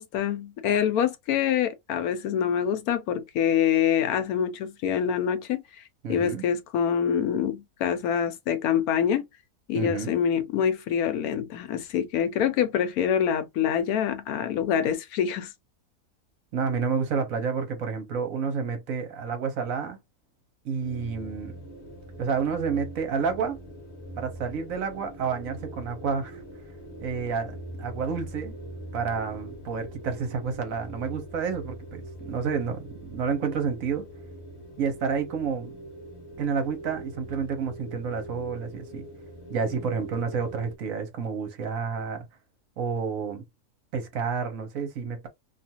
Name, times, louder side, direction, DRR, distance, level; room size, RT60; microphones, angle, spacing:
voice 1, 0.0-5.6 6.1-9.3 9.7-15.5, left 8 dB, 80° left, 1.1 m, -25 dB
voice 2, 6.0-6.4 9.7-10.1 16.5-20.0 20.6-21.6 22.2-23.6 24.2-26.4 27.0-28.6 28.9-34.0 34.8-35.8 36.4-39.1 39.5-42.2 42.8-43.4 43.9-45.3, right 6 dB, 70° right, 1.2 m, -30 dB
sound 1, 20.8-40.8, right 1 dB, 55° left, 1.0 m, -42 dB
2.7 x 2.4 x 2.8 m
omnidirectional pair, 1.5 m